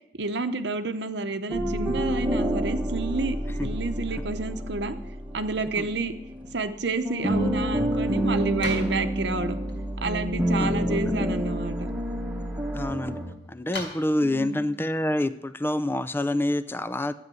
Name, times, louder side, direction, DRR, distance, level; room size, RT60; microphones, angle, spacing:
voice 1, 0.2-4.9 5.3-6.1 6.5-9.6 10.0-11.9 14.2-14.6, right 3 dB, 65° right, 8 dB, 0.9 m, -30 dB
sound 1, 1.5-6.7 7.0-13.3, equal, 10° right, 1.5 m, -28 dB
sound 2, 7.0-16.1, left 2 dB, 75° left, 4.9 m, -45 dB
voice 2, 10.6-11.1 12.7-13.2 13.5-17.1, left 1 dB, 10° left, 13 dB, 0.5 m, -27 dB
13.5 x 9.3 x 7.7 m, 0.87 s
head